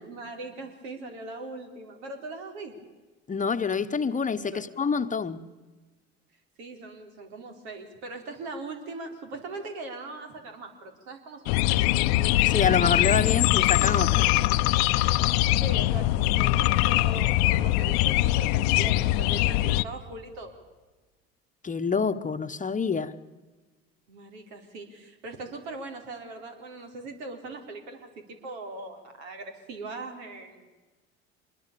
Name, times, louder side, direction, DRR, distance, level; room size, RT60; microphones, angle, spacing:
voice 1, 0.0-2.7 4.5-4.6 6.6-11.9 13.3-13.4 15.6-20.6 24.1-30.7, right 3 dB, 75° right, 4.2 m, -40 dB
voice 2, 3.3-5.4 12.4-14.4 21.6-23.1, left 5 dB, 25° left, 1.1 m, -27 dB
sound 1, 11.5-19.8, left 16 dB, 75° left, 0.8 m, -22 dB
25.5 x 21.5 x 6.9 m
hypercardioid pair, 75°, 32 cm